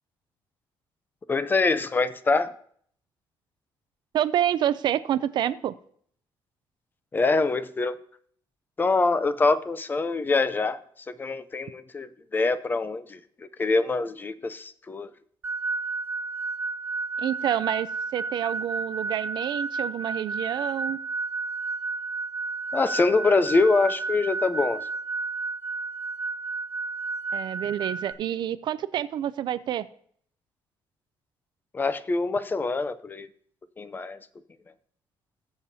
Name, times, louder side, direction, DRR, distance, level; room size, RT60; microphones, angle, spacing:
voice 1, 1.3-2.5 7.1-8.0 8.8-10.8 11.2-13.2 13.6-15.1 22.7-24.9 31.7-33.3 33.8-34.2, left 3 dB, 20° left, 0.5 m, -24 dB
voice 2, 4.1-5.7 17.2-21.0 27.3-29.9, right 11 dB, 60° right, 0.4 m, -28 dB
sound 1, 15.4-28.1, right 3 dB, 25° right, 1.7 m, -32 dB
19.5 x 7.1 x 2.7 m
cardioid pair, 135°, 9 cm